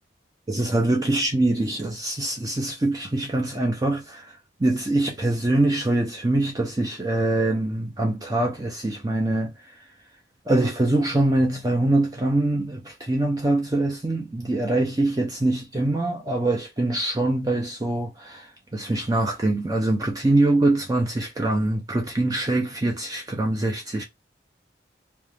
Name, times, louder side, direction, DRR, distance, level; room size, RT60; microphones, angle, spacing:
voice 1, 0.5-9.5 10.5-24.0, right 2 dB, 20° right, 0.4 m, -24 dB
2.4 x 2.1 x 3.2 m
head